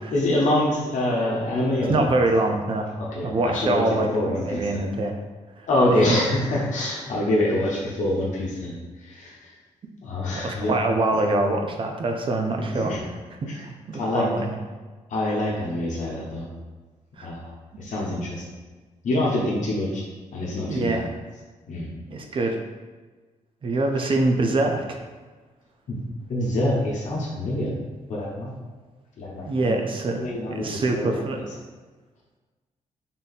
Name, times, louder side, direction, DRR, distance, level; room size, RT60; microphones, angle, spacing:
voice 1, 0.1-2.1 3.1-4.8 5.7-9.5 10.0-10.8 12.7-13.0 13.4-13.6 13.9-14.3 15.1-16.5 17.2-18.4 19.0-20.0 20.3-21.0 21.7-21.9 24.0-24.1 25.9-26.0 26.3-27.7 28.1-28.5 29.2-29.7 30.2-31.4, left 1 dB, 70° left, -5 dB, 0.9 m, -25 dB
voice 2, 1.9-2.9 3.2-5.2 5.6-5.7 10.3-13.0 13.5-14.6 17.2-17.3 17.7-17.9 20.7-21.1 22.1-22.6 23.6-25.0 29.4-31.4, right 2 dB, 40° right, 3 dB, 0.5 m, -24 dB
3.7 x 2.7 x 4.0 m, 1.3 s
cardioid pair, 125°, 13 cm